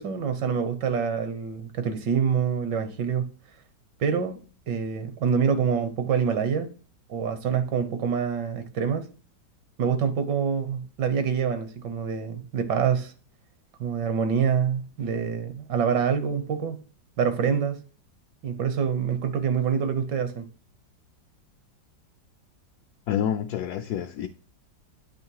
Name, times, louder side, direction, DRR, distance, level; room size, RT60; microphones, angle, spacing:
voice 1, 0.0-3.3 4.0-4.4 4.7-6.7 7.1-9.1 9.8-13.1 13.8-16.8 17.2-17.8 18.4-20.5, right 7 dB, 75° right, 1.6 m, -26 dB
voice 2, 23.1-24.3, left 9 dB, 70° left, 1.0 m, -28 dB
8.8 x 3.1 x 4.7 m
omnidirectional pair, 1.9 m